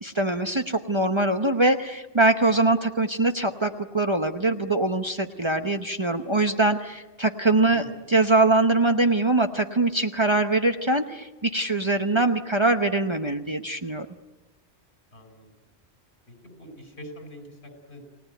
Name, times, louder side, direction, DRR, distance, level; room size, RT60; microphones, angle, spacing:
voice 1, 0.0-14.1, right 2 dB, 30° right, 6 dB, 1.0 m, -23 dB
voice 2, 7.6-7.9 15.1-15.5 16.3-18.0, equal, 75° left, 5 dB, 5.2 m, -44 dB
29.5 x 18.0 x 9.2 m, 1.1 s
omnidirectional pair, 1.1 m